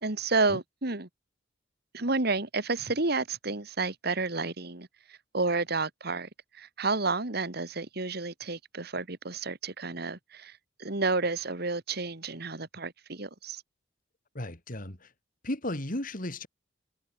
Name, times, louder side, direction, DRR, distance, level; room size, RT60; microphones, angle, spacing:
voice 1, 0.0-1.1 1.9-6.3 6.5-13.6, right 3 dB, 55° right, 2.2 m, -31 dB
voice 2, 14.4-15.1 15.4-16.5, left 1 dB, 45° left, 3.4 m, -34 dB
head